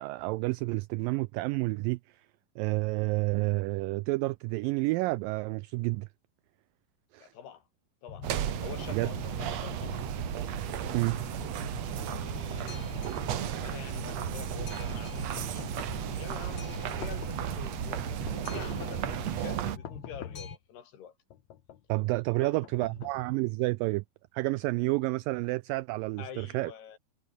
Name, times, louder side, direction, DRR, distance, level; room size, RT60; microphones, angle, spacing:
voice 1, 0.0-2.0 2.6-6.1 7.1-7.3 8.9-9.1 10.9-11.2 21.9-24.0 24.3-26.7, right 22 dB, 90° right, 1.9 m, -29 dB
voice 2, 7.2-7.6 8.0-8.3 8.6-10.1 11.9-15.7 16.1-21.1 22.3-22.9 26.2-27.0, left 8 dB, 90° left, 4.9 m, -47 dB
Boat Water vehicle, 8.1-20.6, left 6 dB, 40° left, 2.9 m, -43 dB
sound 1, 8.2-19.8, right 11 dB, 60° right, 2.0 m, -34 dB
sound 2, 15.4-16.1 16.8-17.5 18.3-19.0 19.8-20.6 21.3-21.9 22.6-23.5, left 10 dB, 55° left, 2.5 m, -47 dB
omnidirectional pair, 4.5 m